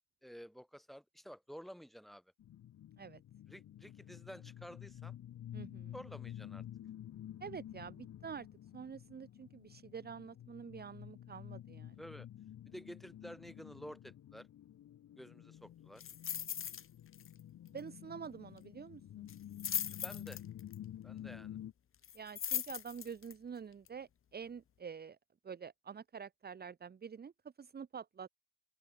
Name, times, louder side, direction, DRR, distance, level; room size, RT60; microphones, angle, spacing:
voice 1, 0.0-2.2 3.5-5.2 5.9-6.6 12.0-12.3 12.6-14.5 15.1-16.0 20.0-20.4 21.0-21.6, equal, ahead, 5.0 m, -51 dB
sound 1, 2.4-21.7, left 11 dB, 55° left, 1.9 m, -51 dB
voice 2, 5.5-5.9 7.4-8.5 8.7-12.0 17.7-19.3 22.1-25.2 25.4-27.3 27.6-28.3, right 6 dB, 30° right, 1.5 m, -47 dB
sound 2, 16.0-16.9 17.1-17.4 17.7-17.8 19.3-20.8 22.0-23.3 23.9-24.0, left 8 dB, 40° left, 1.5 m, -39 dB
open air
cardioid pair, 175°, 33 cm